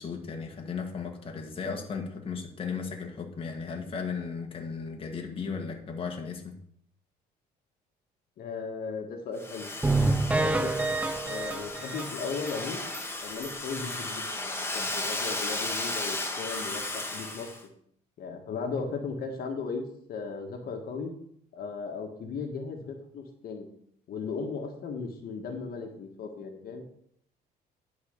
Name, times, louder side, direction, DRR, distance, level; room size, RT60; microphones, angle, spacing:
voice 1, 0.0-6.6, left 5 dB, 35° left, 2 dB, 1.7 m, -35 dB
voice 2, 8.4-9.7 10.3-10.8 11.2-12.8 13.2-17.5 18.2-19.8 20.1-21.1 21.5-23.7 24.1-26.8, left 4 dB, 60° left, 4 dB, 1.7 m, -36 dB
Domestic sounds home sounds, 9.4-17.6, left 2 dB, 15° left, 1.6 m, -35 dB
sound 1, 9.8-12.5 12.9-13.0 13.4-13.5 13.9-14.0, right 2 dB, 5° right, 0.5 m, -28 dB
10.5 x 4.8 x 6.7 m, 0.67 s
cardioid pair, 110°, 17 cm